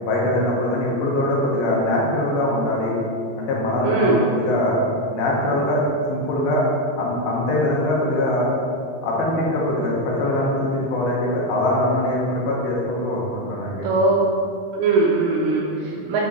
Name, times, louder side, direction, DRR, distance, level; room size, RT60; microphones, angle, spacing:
voice 1, 0.0-2.9 3.4-4.8 5.1-5.8 6.1-6.6 7.0-8.5 9.0-13.9, left 1 dB, 85° left, -3 dB, 3.1 m, -22 dB
voice 2, 3.8-4.2 13.8-14.2 14.7-16.2, right 3 dB, 85° right, -7 dB, 2.9 m, -20 dB
9.1 x 4.2 x 4.3 m, 2.4 s
omnidirectional pair, 4.3 m